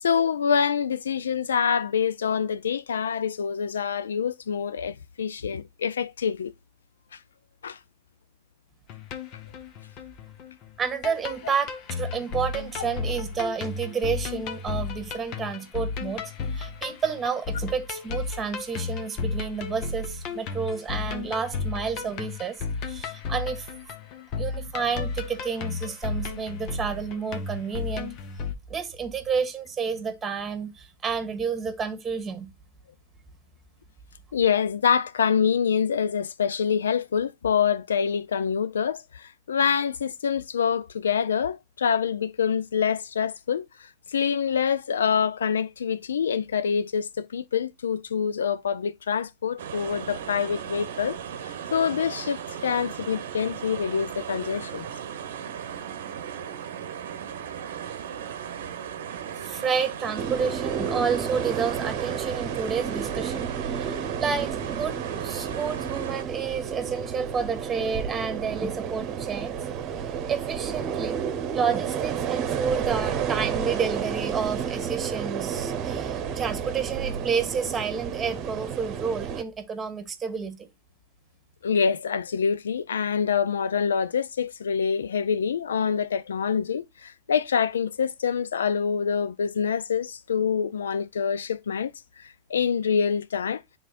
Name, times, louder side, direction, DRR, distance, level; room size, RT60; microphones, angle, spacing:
voice 1, 0.0-6.5 7.6-7.8 34.3-51.2 51.7-54.9 81.6-91.9 92.2-93.6, left 7 dB, 90° left, 0.4 m, -26 dB
sound 1, 8.9-28.5, left 4 dB, 50° left, 1.0 m, -33 dB
voice 2, 10.8-23.7 24.4-28.2 28.7-32.5 59.4-69.6 70.3-71.2 71.5-80.7, right 6 dB, 20° right, 1.5 m, -30 dB
sound 2, 49.6-66.2, right 9 dB, 75° right, 0.8 m, -37 dB
sound 3, 60.2-79.4, right 8 dB, 40° right, 1.0 m, -31 dB
10.0 x 3.8 x 2.4 m
hypercardioid pair, 105°, 0 cm